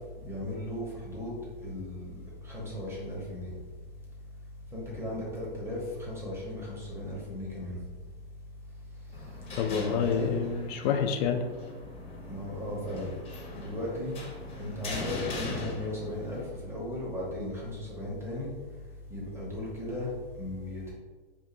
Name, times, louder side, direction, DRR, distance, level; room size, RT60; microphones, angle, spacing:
voice 1, 0.2-3.5 4.7-7.8 9.7-10.5 12.3-13.1 13.5-14.2 14.6-18.5 19.1-20.9, left 1 dB, 10° right, -5 dB, 1.0 m, -36 dB
sound 1, 9.1-16.5, left 2 dB, 20° left, 0.8 m, -40 dB
voice 2, 9.6-11.4, left 7 dB, 40° left, 4 dB, 0.4 m, -28 dB
4.5 x 2.5 x 2.6 m, 1.4 s
hypercardioid pair, 120°, 32 cm